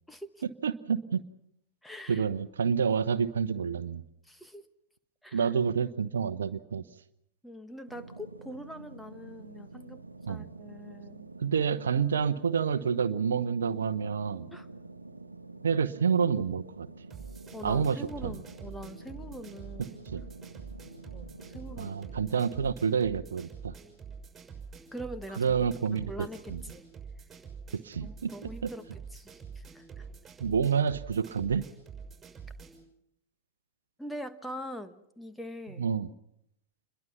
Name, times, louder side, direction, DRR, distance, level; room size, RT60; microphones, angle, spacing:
voice 1, 0.1-0.4 1.8-2.3 4.2-4.6 5.2-5.5 7.4-10.0 10.3-11.3 14.5-14.7 17.5-20.0 21.1-21.9 24.9-25.7 26.1-26.8 28.0-28.8 29.1-30.1 34.0-35.9, equal, 5° left, 9 dB, 1.4 m, -43 dB
voice 2, 0.6-1.2 2.1-4.0 5.3-6.8 10.3-10.5 11.4-14.5 15.6-16.9 17.6-18.4 20.1-20.2 21.8-23.7 25.4-26.6 27.7-28.3 28.6-28.7 30.4-31.7 35.8-36.1, right 6 dB, 70° right, 14 dB, 0.9 m, -28 dB
sound 1, 7.9-22.7, right 3 dB, 85° right, 1.1 m, -48 dB
sound 2, 17.1-32.8, right 5 dB, 15° right, 6.2 m, -46 dB
28.0 x 22.0 x 5.9 m, 0.76 s
figure-of-eight pair, 90°, 0 cm